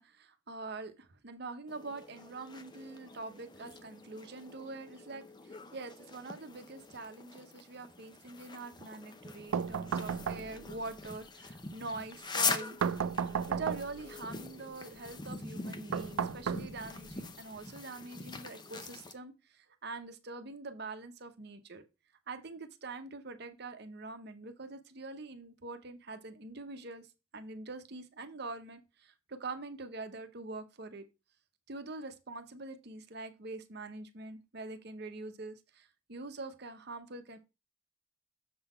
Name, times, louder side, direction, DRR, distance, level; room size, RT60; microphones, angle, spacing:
voice 1, 0.0-12.8 13.5-21.8 22.3-27.1 27.3-31.0 31.7-37.4, right 3 dB, 55° right, 8 dB, 0.8 m, -44 dB
sound 1, 1.7-19.1, left 4 dB, 20° left, 0.6 m, -42 dB
sound 2, 9.5-10.8 12.8-14.1 15.9-17.1, right 7 dB, 80° right, 0.4 m, -34 dB
6.7 x 4.0 x 5.5 m, 0.27 s
head